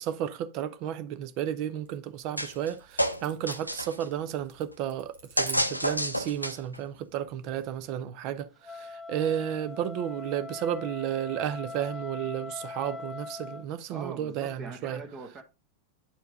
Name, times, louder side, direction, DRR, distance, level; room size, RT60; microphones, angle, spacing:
voice 1, 0.0-15.0, right 10 dB, 40° right, 0.6 m, -33 dB
sound 1, 1.4-6.1, right 4 dB, 65° right, 1.8 m, -48 dB
sound 2, 2.4-2.7 3.0-4.1 5.4-6.8, equal, 90° left, 0.5 m, -29 dB
Wind instrument woodwind instrument, 8.6-13.6, left 4 dB, 15° left, 0.5 m, -41 dB
voice 2, 13.9-15.4, right 4 dB, 25° right, 1.2 m, -42 dB
8.7 x 4.6 x 3.7 m
figure-of-eight pair, 90°, 0 cm